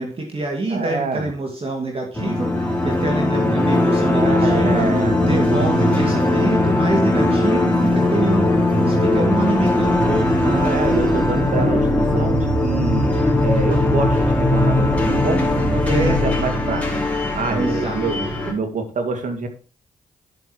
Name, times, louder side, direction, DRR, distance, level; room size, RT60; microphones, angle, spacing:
voice 1, 0.0-4.9 5.2-10.7 15.8-16.3 17.5-18.3, right 2 dB, 40° right, 1 dB, 2.3 m, -26 dB
voice 2, 0.7-1.3 4.1-5.2 7.1-8.0 10.4-16.9 17.3-18.2 18.4-19.5, right 4 dB, 60° right, 6 dB, 2.0 m, -26 dB
sound 1, 2.1-18.5, left 1 dB, 10° left, 3.7 m, -19 dB
10.0 x 7.7 x 3.0 m, 0.37 s
hypercardioid pair, 45°, 15 cm